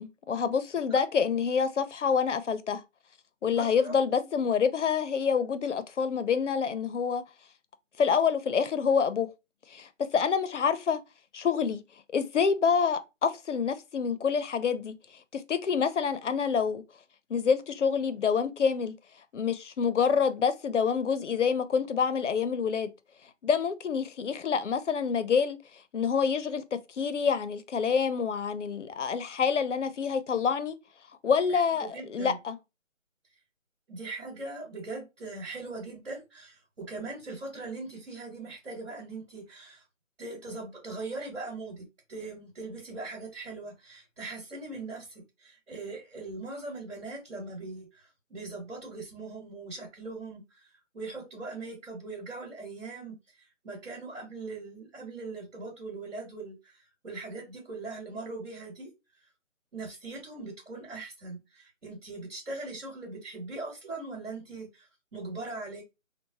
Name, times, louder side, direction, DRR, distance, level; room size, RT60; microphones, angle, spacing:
voice 1, 0.0-2.8 3.4-7.2 8.0-9.3 9.7-11.0 11.3-11.8 12.1-14.9 15.3-16.8 17.3-18.9 19.3-22.9 23.4-25.6 25.9-30.8 31.2-32.6, left 6 dB, 65° left, 0.5 m, -27 dB
voice 2, 3.5-4.2 31.5-32.4 33.9-39.8 40.2-53.1 53.6-58.9 59.7-65.8, right 3 dB, 65° right, 1.4 m, -40 dB
3.0 x 2.0 x 2.7 m
figure-of-eight pair, 175°, 39 cm